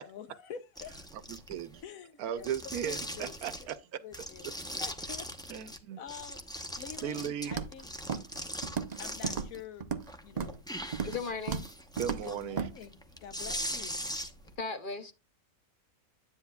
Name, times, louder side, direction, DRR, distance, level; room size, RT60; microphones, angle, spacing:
voice 1, 0.0-1.1 1.8-3.7 4.0-4.5 4.8-5.3 6.0-8.3 9.0-9.9 10.2-10.6 12.1-14.0, left 8 dB, 70° left, 1.2 m, -47 dB
sound 1, 0.8-1.8 2.4-3.8 4.1-5.8 6.1-9.6 10.0-14.5, equal, 5° left, 0.6 m, -40 dB
voice 2, 1.3-1.8 2.2-4.0 5.5-6.0 7.0-7.6 12.0-12.7, right 9 dB, 85° right, 1.2 m, -36 dB
Walk footsteps, 7.5-7.8 8.1-8.4 8.6-9.0 9.2-10.1 10.4-10.6 10.9-11.2 11.5-11.7 12.0-12.2 12.6-12.7, right 6 dB, 45° right, 0.5 m, -34 dB
voice 3, 11.0-11.7 14.6-15.1, left 4 dB, 45° left, 0.8 m, -36 dB
9.8 x 8.9 x 2.3 m
omnidirectional pair, 1.5 m